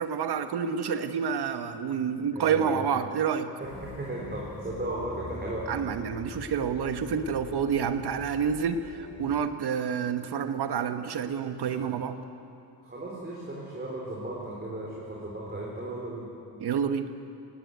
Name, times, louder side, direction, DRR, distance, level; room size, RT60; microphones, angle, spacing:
voice 1, 0.0-3.5 5.7-12.2 16.6-17.1, right 7 dB, 70° right, 9 dB, 1.3 m, -28 dB
voice 2, 2.3-2.8 3.6-5.6 11.7-11.8 12.8-16.3, right 1 dB, 25° right, -4 dB, 4.1 m, -36 dB
sound 1, 3.6-9.4, left 3 dB, 60° left, 6.2 m, -45 dB
18.5 x 18.0 x 9.4 m, 2.6 s
cardioid pair, 120°, 41 cm